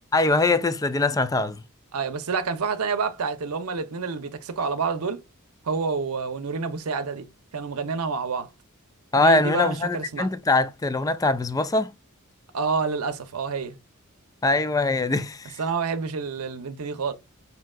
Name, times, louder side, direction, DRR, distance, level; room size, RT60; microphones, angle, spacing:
voice 1, 0.1-1.6 9.1-11.9 14.4-15.6, left 2 dB, 15° left, 0.4 m, -22 dB
voice 2, 1.9-5.2 5.6-7.3 7.5-8.5 9.1-10.3 12.5-13.8 15.6-17.1, right 5 dB, 90° right, 0.7 m, -28 dB
5.3 x 2.8 x 2.3 m
head